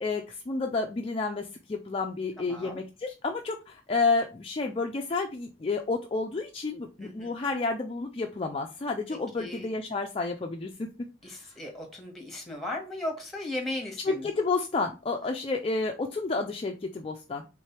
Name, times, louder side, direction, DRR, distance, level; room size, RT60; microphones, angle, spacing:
voice 1, 0.0-10.9 11.3-11.5 14.1-17.5, left 3 dB, 30° left, 3 dB, 0.4 m, -30 dB
voice 2, 2.4-2.8 7.0-7.3 9.1-9.7 11.2-14.3, left 1 dB, ahead, 1 dB, 1.3 m, -37 dB
3.7 x 3.2 x 4.3 m, 0.31 s
head